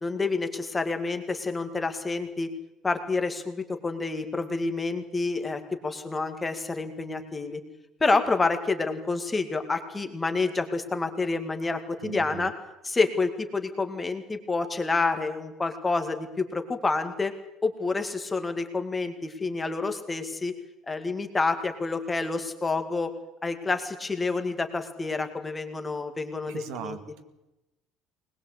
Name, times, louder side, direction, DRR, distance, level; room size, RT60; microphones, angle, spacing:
voice 1, 0.0-2.5 2.8-7.6 8.0-12.5 12.8-17.3 17.6-20.5 20.9-23.1 23.4-27.0, left 3 dB, 15° left, 7 dB, 2.1 m, -28 dB
voice 2, 12.0-12.5 26.5-27.2, right 9 dB, 80° right, 8 dB, 2.1 m, -39 dB
21.5 x 20.5 x 8.2 m, 0.96 s
cardioid pair, 170°, 0 cm